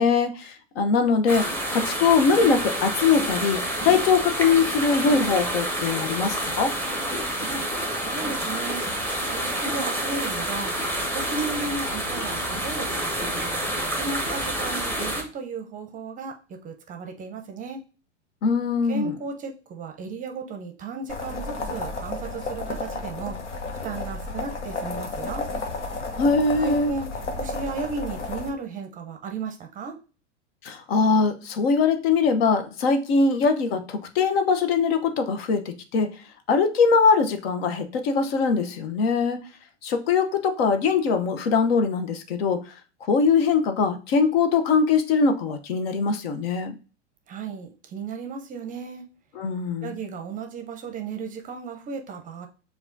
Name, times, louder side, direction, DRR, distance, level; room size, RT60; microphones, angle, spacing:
voice 1, 0.0-6.7 18.4-19.1 26.2-26.9 30.6-36.1 36.5-39.4 39.8-42.7 43.1-46.8 49.4-49.9, left 5 dB, 55° left, 7 dB, 0.8 m, -22 dB
sound 1, 1.3-15.2, right 1 dB, 5° left, 0.9 m, -28 dB
voice 2, 7.3-7.7 8.0-8.9 9.3-10.8 11.1-13.5 13.9-17.8 18.9-23.4 23.8-25.5 26.6-27.1 27.4-30.0 47.3-49.1 49.8-52.5, right 4 dB, 25° right, 5 dB, 0.6 m, -34 dB
sound 2, 21.1-28.5, left 3 dB, 80° left, 1.0 m, -32 dB
6.8 x 2.4 x 2.6 m, 0.35 s
hypercardioid pair, 100°, 35 cm